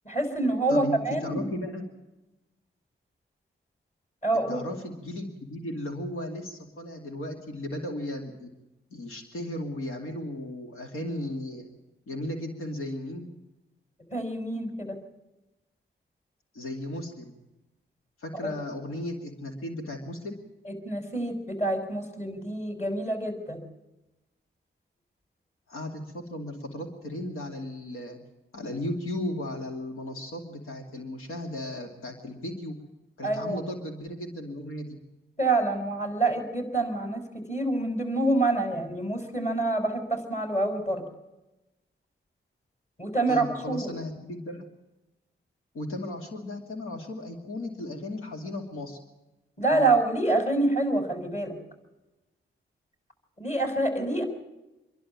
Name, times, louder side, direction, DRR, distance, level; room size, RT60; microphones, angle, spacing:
voice 1, 0.0-1.4 4.2-4.6 14.1-15.0 18.3-18.5 20.7-23.6 33.2-33.6 35.4-37.2 37.5-41.0 43.0-43.9 49.6-51.5 53.4-54.2, right 2 dB, 35° left, 6 dB, 6.0 m, -27 dB
voice 2, 0.7-1.9 4.5-8.5 8.9-11.7 12.1-13.3 16.5-17.3 18.2-20.4 25.7-28.2 28.5-32.8 33.2-35.0 43.3-44.6 45.7-49.0, left 1 dB, 85° left, 3 dB, 2.6 m, -35 dB
26.0 x 11.5 x 8.6 m, 1.0 s
cardioid pair, 55°, 21 cm